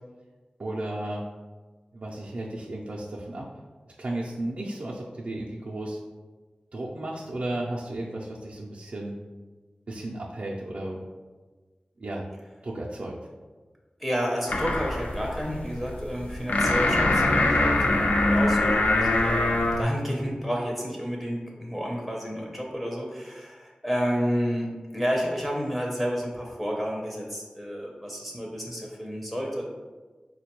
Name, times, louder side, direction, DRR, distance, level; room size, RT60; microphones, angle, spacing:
voice 1, 0.6-1.2 1.9-3.5 4.0-6.0 6.7-9.2 9.9-11.0 12.0-12.2 12.6-13.2, right 1 dB, 65° right, -4 dB, 0.4 m, -34 dB
voice 2, 14.0-29.6, equal, 5° left, -2 dB, 0.5 m, -30 dB
sound 1, 14.5-19.8, left 2 dB, 85° left, 0.4 m, -23 dB
4.3 x 2.2 x 2.9 m, 1.3 s
wide cardioid pair, 70°, 3 cm